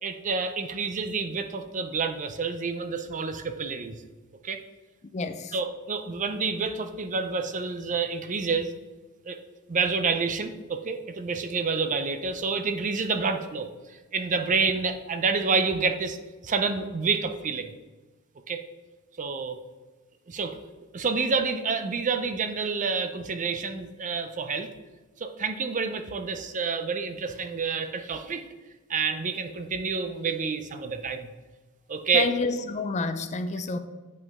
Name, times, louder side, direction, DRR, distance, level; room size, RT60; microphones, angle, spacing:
voice 1, 0.0-4.0 4.4-4.6 5.5-8.7 9.3-9.4 9.7-13.7 14.1-16.2 16.4-17.7 18.5-18.6 19.2-19.6 20.3-20.6 20.9-24.7 25.2-28.4 28.9-31.3 31.9-32.3, right 4 dB, 35° right, 8 dB, 0.5 m, -28 dB
voice 2, 5.1-5.6 32.1-33.8, left 4 dB, 30° left, 10 dB, 0.4 m, -29 dB
7.8 x 5.4 x 3.6 m, 1.2 s
head